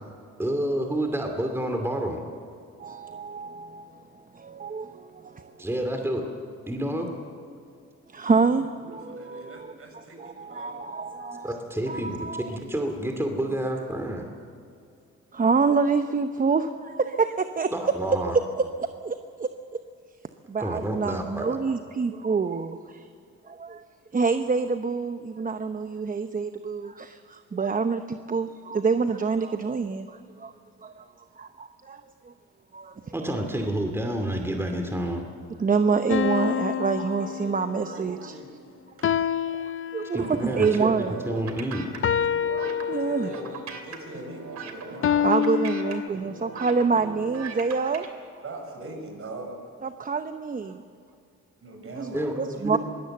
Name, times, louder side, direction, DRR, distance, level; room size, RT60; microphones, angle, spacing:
voice 1, 0.4-2.2 5.6-6.3 6.7-7.1 11.4-12.2 12.5-14.3 17.7-18.4 20.6-21.6 33.1-35.2 40.1-41.9 52.1-52.3 52.6-52.8, right 1 dB, 10° right, 4 dB, 2.5 m, -29 dB
voice 2, 2.8-4.0 4.3-5.6 8.1-9.7 10.2-11.6 11.9-12.5 15.3-17.7 18.1-18.4 18.8-19.5 20.5-23.1 23.5-23.8 24.1-30.5 30.8-31.0 31.4-32.3 32.7-33.1 35.6-38.3 39.5-41.2 42.5-43.3 45.2-48.1 49.8-50.8 52.0-52.1 52.4-52.8, right 5 dB, 30° right, 9 dB, 0.9 m, -27 dB
voice 3, 8.4-10.8 17.7-17.8 37.0-39.2 42.8-45.4 48.4-49.6 51.6-52.7, right 2 dB, 45° right, 2 dB, 6.9 m, -42 dB
sound 1, 36.1-37.9 39.0-40.5 42.0-43.6 45.0-46.1, left 9 dB, 45° left, 0.6 m, -27 dB
sound 2, 40.2-48.1, right 5 dB, 65° right, 2.8 m, -39 dB
23.0 x 17.5 x 7.8 m, 2.4 s
cardioid pair, 90°, 30 cm